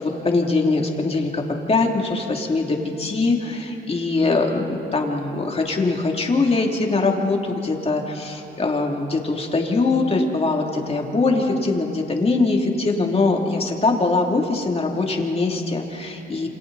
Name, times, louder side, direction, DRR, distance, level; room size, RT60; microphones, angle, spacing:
voice 1, 0.0-1.4 1.7-16.5, left 3 dB, 30° left, 1 dB, 2.9 m, -22 dB
28.0 x 26.5 x 4.2 m, 3.0 s
cardioid pair, 90°, 20 cm